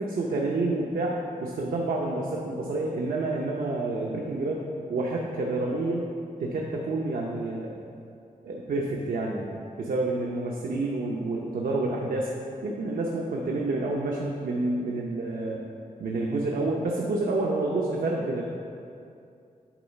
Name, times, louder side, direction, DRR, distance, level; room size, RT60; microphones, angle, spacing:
voice 1, 0.0-6.0 6.4-7.9 8.4-12.3 12.6-15.6 16.0-18.4, right 2 dB, 80° right, -2 dB, 0.7 m, -29 dB
9.0 x 3.9 x 5.3 m, 2.5 s
wide cardioid pair, 155°, 14 cm